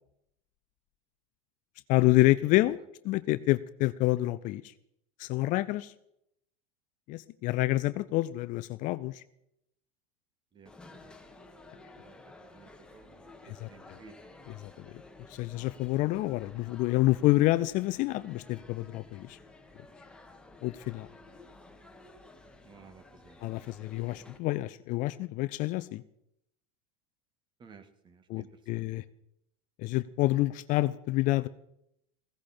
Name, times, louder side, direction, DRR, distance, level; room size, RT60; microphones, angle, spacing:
voice 1, 1.9-2.8 3.0-4.6 5.2-5.9 7.1-9.2 13.6-14.0 14.6-14.7 15.3-19.4 20.6-21.1 23.4-26.0 28.3-29.0 29.8-31.5, left 18 dB, 45° left, 16 dB, 0.6 m, -28 dB
voice 2, 10.5-11.1 11.6-11.7 12.0-14.2 22.6-23.5 27.6-29.0, right 5 dB, 25° right, 10 dB, 1.9 m, -56 dB
sound 1, 10.7-24.4, left 2 dB, 5° left, 1.9 m, -53 dB
16.5 x 16.0 x 4.4 m, 0.76 s
supercardioid pair, 115°, 19 cm